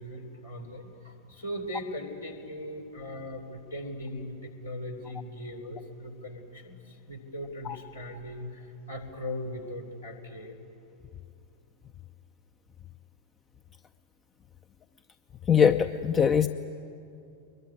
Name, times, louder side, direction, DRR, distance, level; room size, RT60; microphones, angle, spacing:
voice 1, 0.0-10.6, left 1 dB, 80° left, 1 dB, 3.5 m, -39 dB
voice 2, 15.5-16.5, left 7 dB, 25° left, 10 dB, 0.6 m, -22 dB
24.0 x 21.5 x 9.6 m, 2.7 s
figure-of-eight pair, 90°, 0 cm